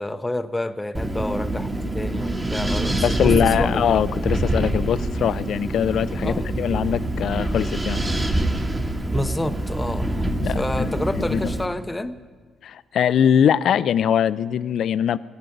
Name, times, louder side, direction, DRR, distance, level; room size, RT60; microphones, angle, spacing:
voice 1, 0.0-3.9 6.2-6.5 9.1-12.2, left 1 dB, 15° left, 10 dB, 0.7 m, -29 dB
Wind, 0.9-11.7, right 1 dB, 20° right, 1.5 m, -25 dB
voice 2, 3.0-8.0 10.4-10.9 11.1-11.5 12.6-15.2, left 9 dB, 65° left, 17 dB, 0.4 m, -22 dB
17.5 x 8.2 x 9.2 m, 1.5 s
cardioid pair, 90°, 0 cm